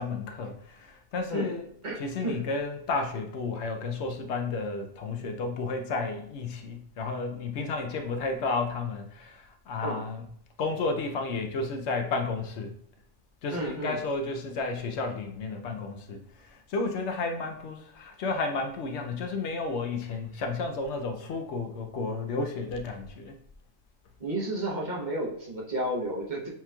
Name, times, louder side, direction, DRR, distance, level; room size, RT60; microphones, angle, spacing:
voice 1, 0.0-1.6 2.0-10.2 10.6-12.7 13.4-16.2 16.5-23.4, left 3 dB, 70° left, 5 dB, 0.8 m, -32 dB
voice 2, 1.8-2.4 9.8-10.0 13.5-14.0 24.2-26.5, right 1 dB, 40° right, -4 dB, 0.9 m, -32 dB
7.3 x 2.9 x 2.2 m, 0.67 s
omnidirectional pair, 1.3 m